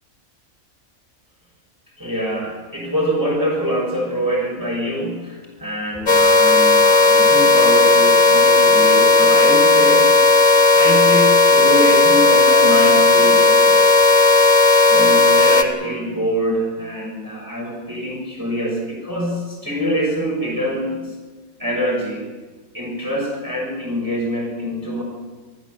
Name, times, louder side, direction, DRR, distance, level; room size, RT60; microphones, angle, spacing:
voice 1, 2.0-14.1 14.6-21.1 21.6-22.2 22.7-25.0, equal, 15° right, -3 dB, 6.6 m, -24 dB
sound 1, 6.1-15.6, left 3 dB, 55° left, 2.0 m, -13 dB
25.0 x 15.5 x 8.1 m, 1.4 s
omnidirectional pair, 1.5 m